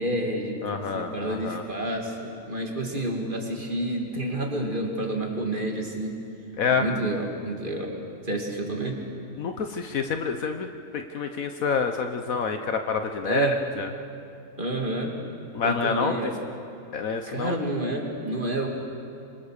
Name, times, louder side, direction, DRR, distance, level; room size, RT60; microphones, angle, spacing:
voice 1, 0.0-6.2 6.7-7.9 8.2-9.0 13.2-13.6 14.6-15.1 15.6-16.3 17.3-18.7, right 1 dB, 35° right, 1 dB, 2.8 m, -29 dB
voice 2, 0.6-1.6 6.6-6.9 9.4-10.7 10.9-13.9 15.5-16.3 16.9-17.6, left 5 dB, 70° left, 6 dB, 1.4 m, -28 dB
25.5 x 24.5 x 6.7 m, 2.5 s
omnidirectional pair, 1.5 m